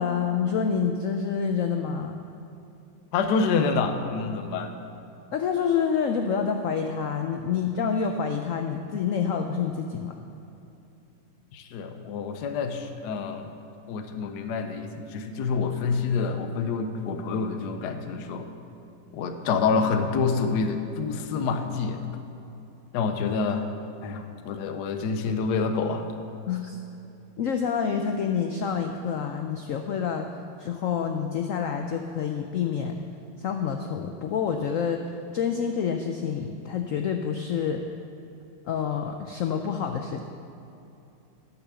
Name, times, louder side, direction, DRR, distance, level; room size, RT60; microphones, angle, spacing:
voice 1, 0.0-2.2 5.3-10.1 26.5-26.8 27.4-30.3 30.6-33.0 33.4-35.0 35.3-37.8 38.6-40.2, left 6 dB, 85° left, 5 dB, 0.7 m, -27 dB
voice 2, 3.1-4.8 11.5-13.5 13.9-18.5 19.1-22.2 22.9-23.7 24.0-26.1, left 5 dB, 65° left, 7 dB, 1.2 m, -27 dB
9.9 x 7.1 x 6.9 m, 2.8 s
omnidirectional pair, 2.1 m